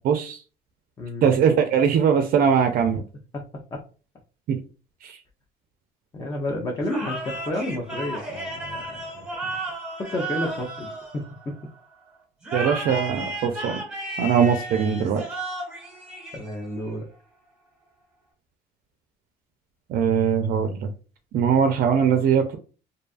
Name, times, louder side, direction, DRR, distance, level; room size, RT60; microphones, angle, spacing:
voice 1, 0.0-0.4 1.2-3.0 4.5-4.6 5.0-5.2 12.5-13.8 14.2-15.2 19.9-20.9 21.3-22.6, right 7 dB, 60° right, 6 dB, 0.4 m, -21 dB
voice 2, 1.0-1.4 3.3-3.4 3.7-3.8 6.1-9.5 10.0-11.6 16.3-17.1, left 1 dB, 20° left, 1 dB, 0.5 m, -31 dB
sound 1, 6.9-11.7 12.4-16.8, right 2 dB, 5° right, 1.1 m, -34 dB
2.6 x 2.3 x 2.4 m, 0.36 s
cardioid pair, 110°, 17 cm